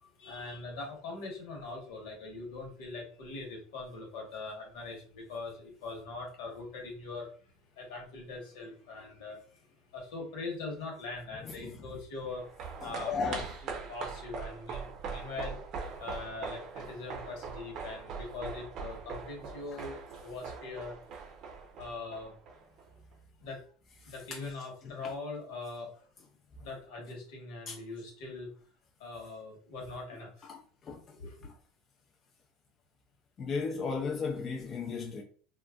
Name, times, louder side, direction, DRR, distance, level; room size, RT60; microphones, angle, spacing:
voice 1, 0.0-7.3 7.8-12.4 12.8-15.6 16.0-21.0 21.8-22.3 23.4-23.6 24.1-26.1 26.6-28.5 29.0-30.5 31.1-31.3, left 3 dB, 75° left, 1.2 m, -42 dB
voice 2, 11.4-11.9 12.8-13.5 19.7-19.8 24.0-24.5 27.7-27.8 30.5-31.2 31.4-31.5 33.4-35.2, left 4 dB, 35° left, 0.5 m, -36 dB
sound 1, 12.3-22.8 23.1-23.2, right 5 dB, 50° right, 0.7 m, -42 dB
2.7 x 2.4 x 2.3 m
supercardioid pair, 105°, 0 cm